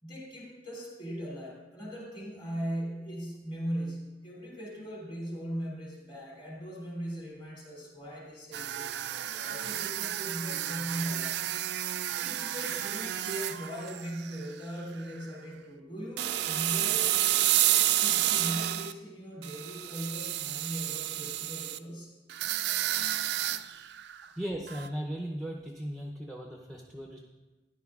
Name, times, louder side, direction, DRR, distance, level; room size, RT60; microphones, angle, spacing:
voice 1, 0.0-11.4 12.2-17.1 18.0-22.1, equal, 30° left, -4 dB, 2.8 m, -39 dB
sound 1, 8.5-14.6 15.0-15.3 16.2-18.9 19.4-21.8 22.3-24.3 24.7-24.9, right 13 dB, 60° right, 0.3 m, -30 dB
voice 2, 24.4-27.2, equal, ahead, 0 dB, 0.6 m, -37 dB
13.5 x 10.5 x 2.4 m, 1.2 s
head